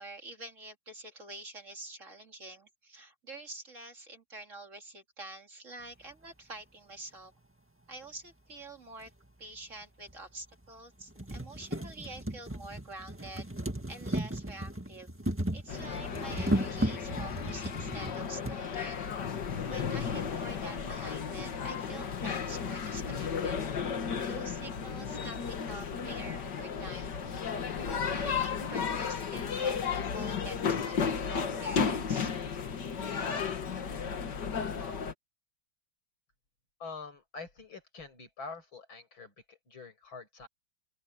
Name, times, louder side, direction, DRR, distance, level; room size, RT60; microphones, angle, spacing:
voice 1, 0.0-7.3 7.9-9.1 9.4-13.5 13.9-15.1 15.5-19.2 19.7-23.6 24.3-25.4 25.6-27.2 27.5-32.3, right 2 dB, 40° right, 2.6 m, -47 dB
sound 1, 9.0-9.1 10.1-10.2 10.6-10.7 11.0-18.6 19.5-19.6 19.8-19.9, right 1 dB, 5° right, 1.5 m, -35 dB
sound 2, 15.7-35.1, left 6 dB, 60° left, 2.2 m, -34 dB
voice 2, 36.8-40.5, left 4 dB, 80° left, 7.4 m, -45 dB
open air
omnidirectional pair, 2.2 m